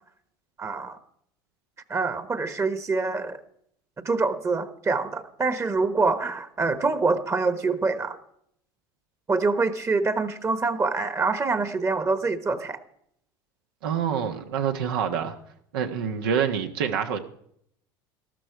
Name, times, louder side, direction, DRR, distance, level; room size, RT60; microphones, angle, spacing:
voice 1, 0.6-1.0 1.9-3.4 4.0-8.2 9.3-12.8, right 3 dB, 25° right, 12 dB, 1.2 m, -25 dB
voice 2, 13.8-15.4 15.7-17.2, right 7 dB, 80° right, 6 dB, 1.4 m, -26 dB
13.5 x 13.0 x 4.7 m, 0.69 s
hypercardioid pair, 90°, 12 cm